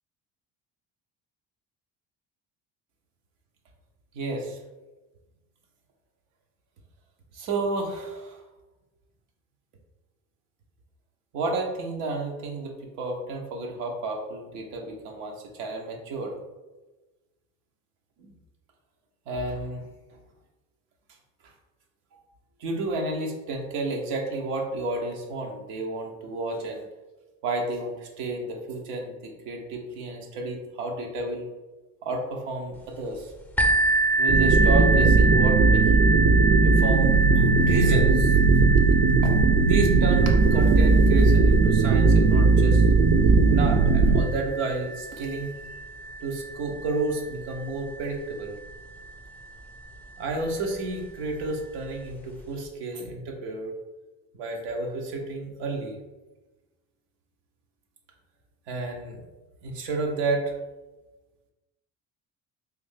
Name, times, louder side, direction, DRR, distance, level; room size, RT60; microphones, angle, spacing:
voice 1, 4.1-4.6 7.3-8.4 11.3-16.4 18.2-18.3 19.3-19.9 22.6-26.9 27.4-31.5 32.0-33.3 34.2-36.1 36.6-38.4 39.2-39.3 39.6-42.8 43.5-45.5 46.2-48.6 50.2-53.7 54.3-56.0 58.7-59.2 59.6-60.6, right 2 dB, 85° right, 1 dB, 0.9 m, -31 dB
sound 1, 33.6-49.1 49.9-50.0 50.5-50.6, right 2 dB, 5° left, 0.5 m, -28 dB
sound 2, 34.3-44.2, right 4 dB, 55° right, 0.7 m, -18 dB
3.4 x 2.6 x 3.6 m, 1.1 s
supercardioid pair, 75°, 40 cm